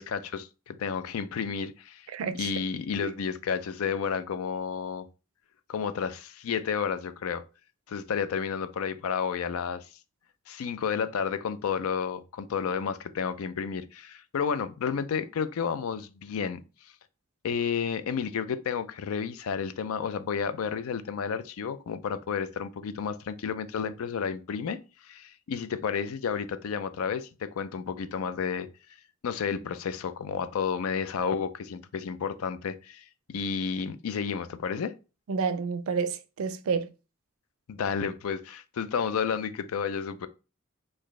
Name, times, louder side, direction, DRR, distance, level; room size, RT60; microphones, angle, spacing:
voice 1, 0.0-2.1 2.4-5.1 5.7-7.4 7.9-9.9 10.5-16.6 17.4-28.7 29.2-34.9 37.7-40.3, left 6 dB, 90° left, 0.4 m, -31 dB
voice 2, 2.1-2.5 3.0-3.1 35.3-36.9, right 5 dB, 80° right, 0.4 m, -30 dB
3.9 x 2.6 x 3.1 m
head